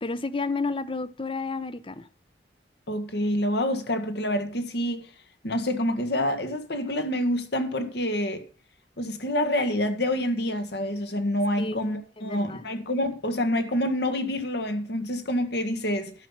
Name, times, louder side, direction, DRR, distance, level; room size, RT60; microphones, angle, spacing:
voice 1, 0.0-2.0 11.6-11.8 12.2-12.6, left 3 dB, 30° left, 0.7 m, -31 dB
voice 2, 2.9-5.0 5.4-8.4 9.0-16.1, left 1 dB, 65° left, 1.6 m, -27 dB
12.0 x 5.7 x 7.3 m
head